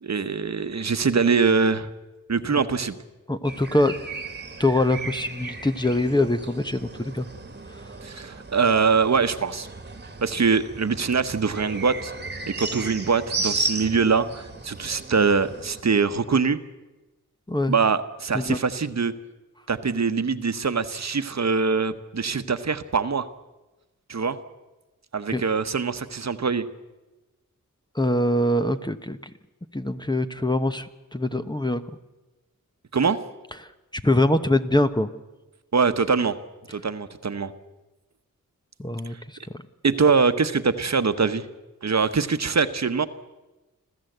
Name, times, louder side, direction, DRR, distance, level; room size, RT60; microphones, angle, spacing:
voice 1, 0.0-1.9 2.3-3.0 8.0-9.7 10.2-12.1 12.4-16.6 17.7-19.1 19.7-23.3 24.1-24.4 25.1-26.7 32.9-33.2 35.7-36.4 36.7-37.5 39.8-41.4 41.8-43.1, right 5 dB, 55° right, 11 dB, 1.1 m, -23 dB
voice 2, 3.3-4.0 4.6-7.3 17.5-17.7 18.3-18.6 25.3-25.4 27.9-29.3 29.7-31.8 33.6-35.1 38.8-39.6, left 1 dB, 15° left, 9 dB, 0.9 m, -24 dB
sound 1, 3.4-15.8, right 3 dB, 30° right, 1.5 m, -35 dB
26.0 x 15.0 x 8.0 m, 1.1 s
wide cardioid pair, 90°, 33 cm